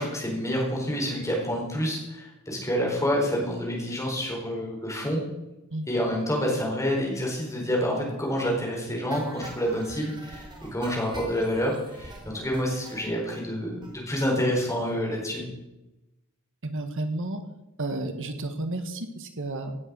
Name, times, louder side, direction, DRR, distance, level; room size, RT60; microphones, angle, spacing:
voice 1, 0.0-5.2 5.9-10.4 10.7-15.4, equal, 15° left, -1 dB, 4.4 m, -28 dB
sound 1, 9.1-13.4 13.8-13.9 14.3-14.4 14.6-14.7 15.0-15.1, right 2 dB, 20° right, 3.1 m, -45 dB
voice 2, 16.6-17.4 17.8-19.8, right 2 dB, 60° right, 7 dB, 1.6 m, -32 dB
17.0 x 7.7 x 6.3 m, 0.97 s
head